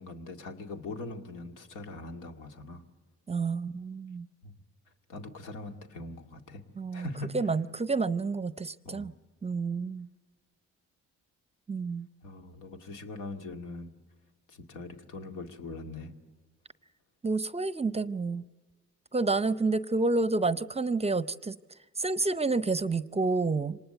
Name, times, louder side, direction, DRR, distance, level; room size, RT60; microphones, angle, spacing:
voice 1, 0.0-2.8 4.4-4.5 5.1-6.6 6.9-7.4 8.8-9.1 12.2-13.9 14.5-16.1, left 2 dB, 85° left, 4 dB, 2.2 m, -41 dB
voice 2, 3.3-4.3 6.8-7.1 7.3-9.1 9.4-10.1 11.7-12.1 17.2-18.4 19.1-21.6 22.0-23.8, right 3 dB, 20° right, 15 dB, 0.6 m, -29 dB
25.5 x 19.5 x 7.9 m, 1.4 s
cardioid pair, 90°, 30 cm